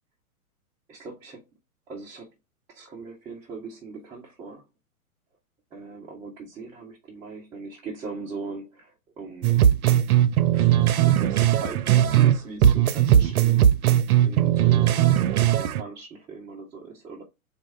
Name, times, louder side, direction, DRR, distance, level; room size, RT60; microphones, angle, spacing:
voice 1, 0.9-1.5 1.9-2.3 2.7-4.6 5.7-9.7 10.5-10.7 11.1-14.0 14.2-17.2, right 4 dB, 10° right, 0.4 m, -40 dB
sound 1, 9.4-12.3 12.6-15.8, right 11 dB, 75° right, 0.6 m, -19 dB
4.3 x 2.4 x 4.0 m
hypercardioid pair, 110°, 44 cm